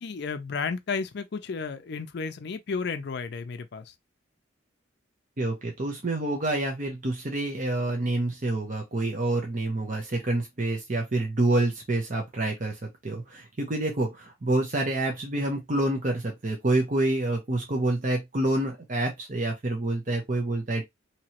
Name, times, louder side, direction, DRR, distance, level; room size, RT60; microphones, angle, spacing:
voice 1, 0.0-3.9, left 5 dB, 55° left, 0.4 m, -33 dB
voice 2, 5.4-20.8, right 2 dB, 40° right, 0.7 m, -27 dB
3.0 x 2.8 x 2.8 m
head